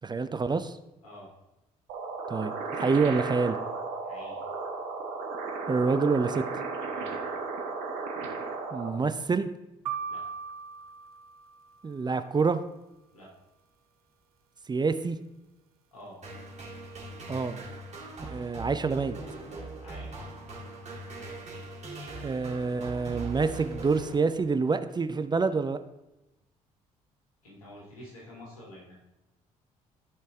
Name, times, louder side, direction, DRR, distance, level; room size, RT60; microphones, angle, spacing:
voice 1, 0.0-0.8 2.3-2.5 2.8-3.6 5.7-6.4 8.7-9.5 11.8-12.6 14.7-15.2 17.3-17.6 18.3-19.2 22.2-25.8, right 4 dB, 25° right, 11 dB, 0.6 m, -27 dB
sound 1, 1.9-8.9, right 4 dB, 65° right, 1.4 m, -34 dB
voice 2, 4.0-4.4 6.9-7.2 10.1-10.4 13.1-13.3 15.9-16.2 19.8-20.3 27.4-29.0, left 1 dB, 80° left, -4 dB, 2.9 m, -48 dB
sound 2, 9.9-12.0, right 6 dB, 85° right, 0.4 m, -38 dB
sound 3, 16.2-24.7, right 2 dB, 40° right, 3.5 m, -41 dB
14.0 x 5.5 x 3.6 m, 0.95 s
figure-of-eight pair, 45°, 18 cm